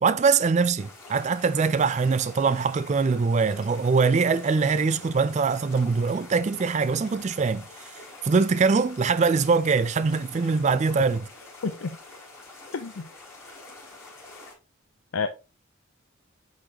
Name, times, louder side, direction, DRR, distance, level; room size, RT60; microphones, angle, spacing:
voice 1, 0.0-7.7 8.2-11.2, right 5 dB, 35° right, 0.4 m, -23 dB
sound 1, 0.8-14.5, left 2 dB, 15° left, 3.8 m, -46 dB
voice 2, 11.6-12.0 12.7-13.1 15.1-15.3, left 5 dB, 85° left, 0.6 m, -29 dB
9.9 x 4.0 x 2.9 m
head